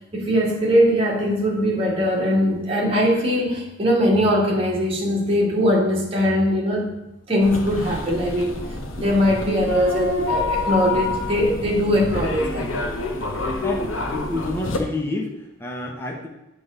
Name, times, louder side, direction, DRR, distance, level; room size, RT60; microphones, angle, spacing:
voice 1, 0.1-6.9 7.3-8.7 9.0-12.7, equal, 30° right, -2 dB, 1.6 m, -21 dB
sound 1, 7.4-14.8, left 2 dB, 85° left, 1.0 m, -27 dB
voice 2, 13.3-16.3, left 2 dB, 10° left, 0 dB, 0.9 m, -30 dB
7.8 x 3.6 x 6.6 m, 0.95 s
head